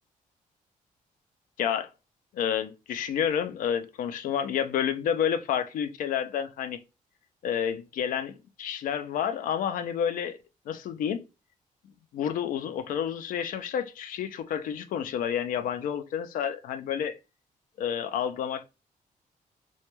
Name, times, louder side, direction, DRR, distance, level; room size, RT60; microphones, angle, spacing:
voice 1, 1.6-1.9 2.3-6.8 7.4-10.4 10.7-11.2 12.1-17.2 17.8-18.6, left 8 dB, 75° left, 0.4 m, -29 dB
2.2 x 2.2 x 2.9 m
cardioid pair, 145°, 14 cm